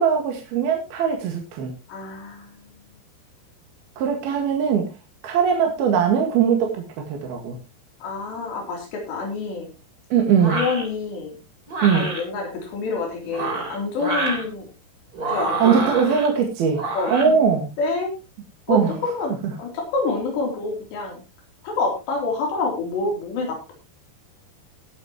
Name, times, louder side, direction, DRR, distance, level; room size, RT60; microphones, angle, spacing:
voice 1, 0.0-1.7 4.0-4.9 5.2-7.6 10.1-10.6 11.8-12.1 15.6-16.8 17.1-17.7 18.7-18.9, right 7 dB, 65° right, 2 dB, 3.7 m, -20 dB
voice 2, 1.9-2.6 8.0-9.7 10.5-11.3 11.9-14.7 15.3-15.8 16.9-17.1 17.8-18.1 18.7-21.2 21.6-23.7, left 4 dB, 80° left, 0 dB, 5.7 m, -27 dB
sound 1, 10.4-10.9 11.7-12.2 13.2-14.4 15.1-16.3 16.7-17.3, right 2 dB, 20° right, 3.5 m, -27 dB
19.5 x 8.8 x 3.1 m, 0.28 s
omnidirectional pair, 4.9 m